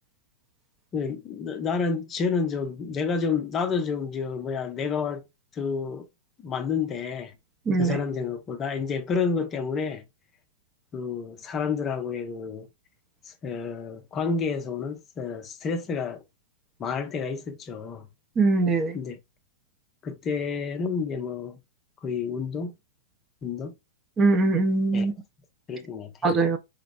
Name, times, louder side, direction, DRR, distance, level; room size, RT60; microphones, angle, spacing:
voice 1, 0.9-5.2 5.5-6.1 6.4-7.3 7.8-10.0 10.9-12.7 13.3-16.2 16.8-18.1 18.9-19.2 20.0-21.6 22.0-22.7 23.4-23.7 24.9-25.1 25.7-26.3, left 5 dB, 25° left, 0.6 m, -29 dB
voice 2, 7.7-8.0 18.4-19.0 24.2-25.1 26.2-26.6, right 3 dB, 25° right, 0.6 m, -22 dB
4.3 x 2.0 x 2.5 m
hypercardioid pair, 115°, 0 cm